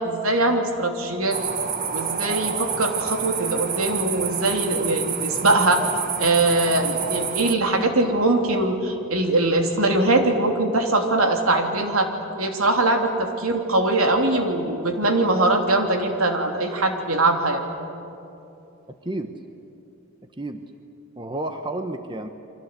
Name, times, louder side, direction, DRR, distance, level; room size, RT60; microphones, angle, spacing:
voice 1, 0.0-1.4 1.9-5.8 6.2-12.1 12.4-17.6, right 2 dB, 75° right, 3 dB, 3.2 m, -22 dB
sound 1, 1.3-7.5, right 7 dB, 40° right, 1.3 m, -28 dB
voice 2, 19.0-19.4 20.4-20.6 21.2-22.3, right 2 dB, 20° right, 7 dB, 1.0 m, -30 dB
30.0 x 24.0 x 8.1 m, 2.8 s
head